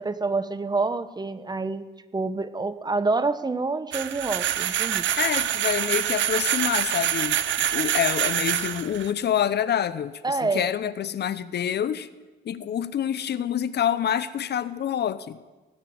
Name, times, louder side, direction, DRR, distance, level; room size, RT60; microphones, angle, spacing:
voice 1, 0.0-1.9 2.1-5.1 10.2-10.7, right 3 dB, 20° right, 12 dB, 1.0 m, -27 dB
sound 1, 3.9-9.1, right 11 dB, 70° right, 0.9 m, -26 dB
voice 2, 5.2-12.1 12.4-15.4, left 9 dB, 55° left, 15 dB, 0.7 m, -27 dB
18.5 x 8.2 x 9.4 m, 1.2 s
cardioid pair, 90°, 20 cm